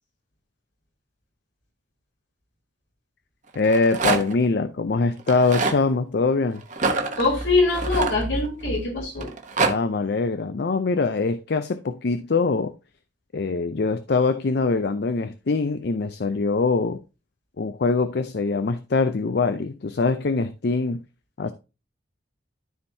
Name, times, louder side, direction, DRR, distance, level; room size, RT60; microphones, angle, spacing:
Rattle, 3.5-4.5 5.2-5.8 6.7-8.7 9.2-9.7, right 3 dB, 40° right, 1.0 m, -25 dB
voice 1, 3.6-6.6 9.6-12.7 13.3-17.0 17.6-21.0 21.4-21.5, left 3 dB, 60° left, 0.5 m, -23 dB
voice 2, 7.2-9.3, left 2 dB, 90° left, 3.8 m, -22 dB
13.0 x 4.4 x 2.7 m
head